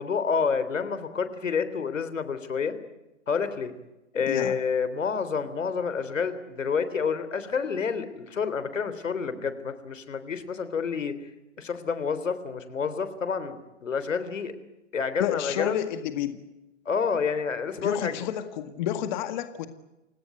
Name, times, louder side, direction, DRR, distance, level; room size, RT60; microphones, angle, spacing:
voice 1, 0.0-2.8 3.3-3.7 4.1-11.1 11.6-14.5 14.9-15.9 16.9-18.2, left 5 dB, 90° left, 12 dB, 3.6 m, -29 dB
voice 2, 4.3-4.6 15.2-16.4 17.8-19.7, left 11 dB, 40° left, 9 dB, 1.9 m, -30 dB
29.0 x 17.5 x 9.2 m, 0.98 s
hypercardioid pair, 145°, 37 cm